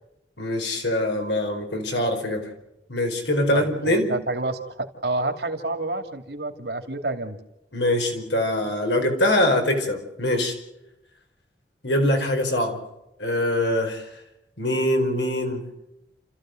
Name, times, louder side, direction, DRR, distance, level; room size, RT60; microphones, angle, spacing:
voice 1, 0.4-2.5 2.9-4.1 7.7-10.5 11.8-12.8 13.2-14.1 14.6-15.7, left 1 dB, 75° left, 3 dB, 4.6 m, -23 dB
voice 2, 3.5-7.4, right 2 dB, 60° right, 6 dB, 2.6 m, -29 dB
29.5 x 14.5 x 7.8 m, 0.90 s
head